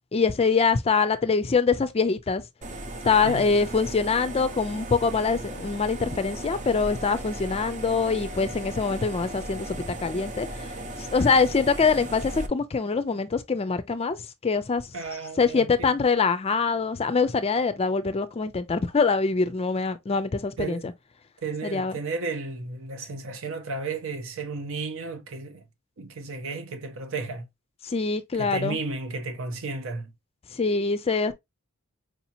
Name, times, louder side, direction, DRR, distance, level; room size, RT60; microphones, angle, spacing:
voice 1, 0.1-2.4 3.0-10.7 11.0-14.2 14.4-14.8 15.4-20.9 21.6-22.0 27.8-28.8 30.5-31.3, left 4 dB, 30° left, 0.4 m, -24 dB
sound 1, 2.6-12.5, right 1 dB, 35° right, 0.7 m, -37 dB
voice 2, 14.9-15.9 20.6-20.9 21.4-25.6 26.0-27.5 28.3-30.1, right 3 dB, 65° right, 0.8 m, -33 dB
4.8 x 2.8 x 2.7 m
head